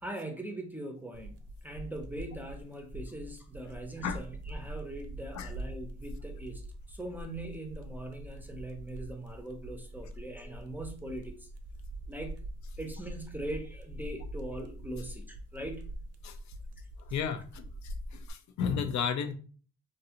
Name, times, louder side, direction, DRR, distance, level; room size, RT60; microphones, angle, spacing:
voice 1, 0.0-11.5 12.1-12.5 12.8-16.0, right 1 dB, 5° right, 4 dB, 0.5 m, -41 dB
sound 1, 1.1-18.3, right 1 dB, 55° right, 0.5 m, -43 dB
voice 2, 17.0-19.3, left 7 dB, 65° left, 7 dB, 0.5 m, -33 dB
2.6 x 2.3 x 2.8 m, 0.40 s
cardioid pair, 90°, 30 cm